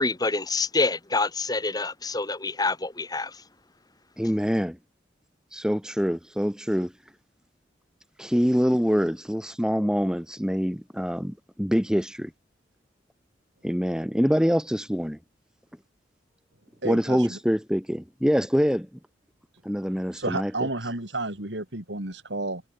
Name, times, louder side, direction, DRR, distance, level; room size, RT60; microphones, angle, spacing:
voice 1, 0.0-3.3, left 3 dB, 20° left, 1.8 m, -26 dB
voice 2, 4.2-4.8 5.5-6.9 8.2-12.3 13.6-15.2 16.8-18.9 19.6-20.5, equal, 5° right, 4.7 m, -25 dB
voice 3, 16.8-17.4 20.2-22.6, right 2 dB, 70° right, 4.9 m, -31 dB
head